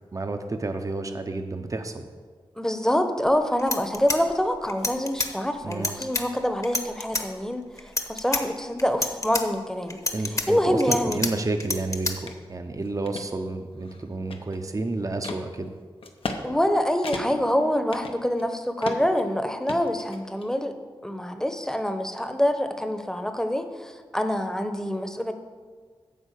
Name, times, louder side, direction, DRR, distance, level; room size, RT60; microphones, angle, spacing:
voice 1, 0.1-2.1 5.6-5.9 10.1-15.7, right 2 dB, 35° right, 7 dB, 0.7 m, -30 dB
voice 2, 2.6-10.0 10.5-11.2 16.4-20.7 21.0-25.3, equal, 5° left, 8 dB, 0.9 m, -26 dB
sound 1, 3.3-3.4 3.6-5.3 5.7-6.2 6.6-7.2 7.8-8.4 8.8-9.4 9.9-11.3 11.6-12.1, left 2 dB, 35° left, 1.0 m, -28 dB
sound 2, 12.3-12.4 12.8-13.3 13.8-14.7 15.2-15.4 16.0-16.4 16.7-16.8 17.0-17.5 17.9-18.5 18.8-19.2 19.7-20.5, left 3 dB, 70° left, 0.8 m, -35 dB
8.4 x 4.6 x 7.4 m, 1.5 s
cardioid pair, 50°, 10 cm